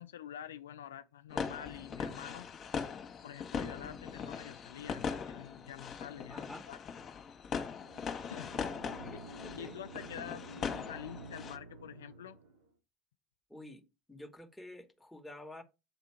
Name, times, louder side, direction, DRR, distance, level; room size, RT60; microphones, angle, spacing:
voice 1, 0.0-2.5 3.2-6.8 8.2-8.8 9.6-10.5 10.9-12.4, left 10 dB, 80° left, 0.3 m, -47 dB
sound 1, 1.3-11.6, left 6 dB, 40° left, 1.4 m, -40 dB
voice 2, 6.3-6.7 8.8-9.8 13.5-15.6, left 1 dB, 5° left, 1.6 m, -50 dB
sound 2, 7.7-12.7, right 3 dB, 75° right, 4.3 m, -50 dB
8.5 x 3.7 x 4.8 m
hypercardioid pair, 70°, 0 cm